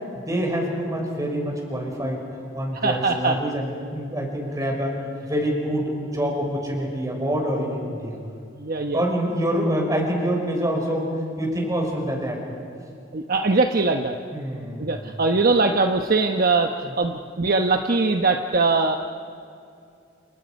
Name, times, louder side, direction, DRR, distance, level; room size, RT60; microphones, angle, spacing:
voice 1, 0.2-2.2 2.5-4.9 5.2-8.2 8.9-12.4 14.3-14.9 16.8-16.9, equal, 20° right, 0 dB, 5.8 m, -26 dB
voice 2, 2.8-3.4 8.5-9.0 13.1-14.2 14.8-19.0, right 3 dB, 50° right, 4 dB, 1.0 m, -21 dB
30.0 x 29.5 x 5.4 m, 2.5 s
head